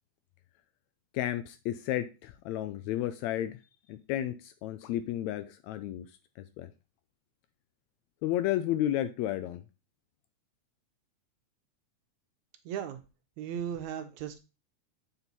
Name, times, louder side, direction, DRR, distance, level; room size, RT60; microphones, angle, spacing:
voice 1, 1.1-3.6 3.9-6.0 6.6-6.7 8.2-9.6, left 12 dB, 80° left, 1.6 m, -32 dB
voice 2, 12.7-13.0 13.4-14.4, right 9 dB, 75° right, 2.0 m, -36 dB
7.9 x 4.5 x 4.0 m
omnidirectional pair, 3.6 m